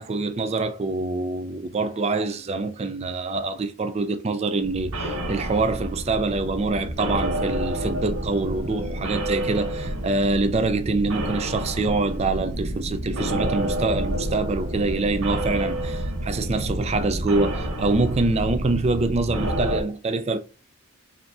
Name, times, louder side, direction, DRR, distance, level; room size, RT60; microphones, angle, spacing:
voice 1, 0.0-20.4, right 3 dB, 30° right, 0.4 m, -25 dB
sound 1, 4.6-19.8, right 1 dB, 85° right, 0.8 m, -29 dB
4.9 x 2.7 x 3.3 m
head